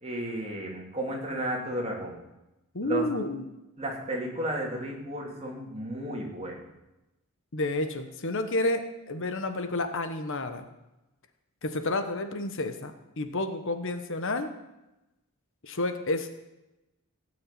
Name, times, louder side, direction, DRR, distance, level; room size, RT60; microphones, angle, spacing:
voice 1, 0.0-2.1 2.8-3.1 3.8-6.6, equal, 30° right, -1 dB, 3.1 m, -33 dB
voice 2, 2.7-3.4 7.5-10.6 11.6-14.5 15.6-16.3, left 2 dB, 60° left, 8 dB, 1.2 m, -30 dB
17.0 x 6.6 x 9.2 m, 0.96 s
head